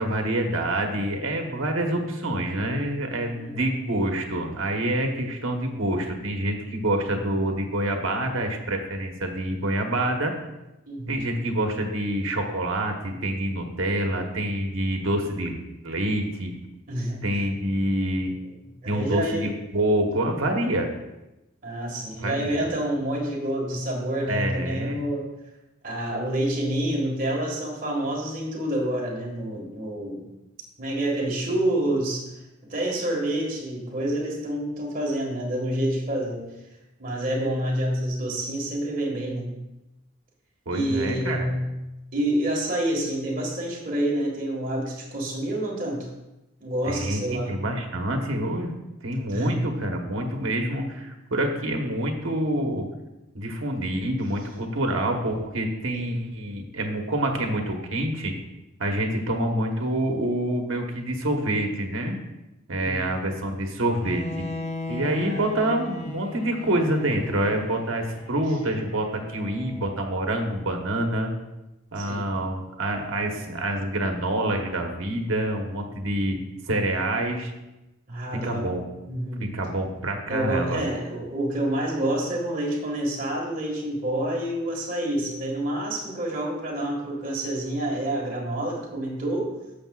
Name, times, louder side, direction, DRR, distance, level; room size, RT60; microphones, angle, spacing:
voice 1, 0.0-10.3 11.1-15.6 15.8-16.5 17.2-18.3 18.8-20.9 22.2-22.7 24.3-25.1 40.7-41.5 46.8-48.7 49.0-52.8 53.3-58.3 58.8-62.2 62.7-64.4 64.9-71.3 71.9-76.4 76.7-77.5 78.3-78.8 79.4-80.9, right 1 dB, 70° right, 3 dB, 1.2 m, -27 dB
voice 2, 3.3-3.7 10.9-11.4 16.9-17.2 18.8-19.5 21.6-25.3 25.8-30.3 30.8-32.3 32.7-36.4 37.0-39.5 40.7-41.7 42.1-46.1 46.6-47.6 49.3-49.7 56.1-56.2 62.7-63.0 65.2-65.6 72.0-72.2 77.0-77.2 78.1-78.7 79.0-79.5 80.3-89.5, right 1 dB, 40° right, -2 dB, 1.8 m, -28 dB
Bowed string instrument, 64.0-70.1, left 2 dB, 30° left, 0.6 m, -37 dB
12.0 x 6.6 x 2.4 m, 0.97 s
head